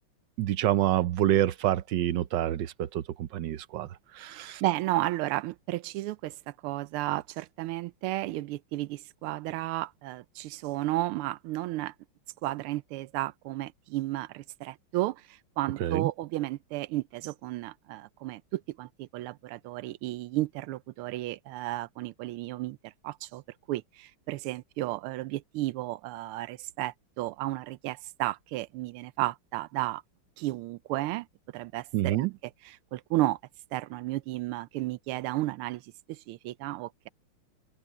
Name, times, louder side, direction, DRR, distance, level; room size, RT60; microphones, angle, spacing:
voice 1, 0.4-3.9 4.1-4.6 15.8-16.1 31.9-32.3, right 13 dB, 70° right, 1.2 m, -27 dB
voice 2, 4.3-6.4 6.6-11.9 12.4-23.4 23.7-30.0 30.4-31.3 31.5-32.3 32.6-33.4 33.7-35.8 36.1-37.1, right 16 dB, 85° right, 1.5 m, -33 dB
omnidirectional pair, 2.4 m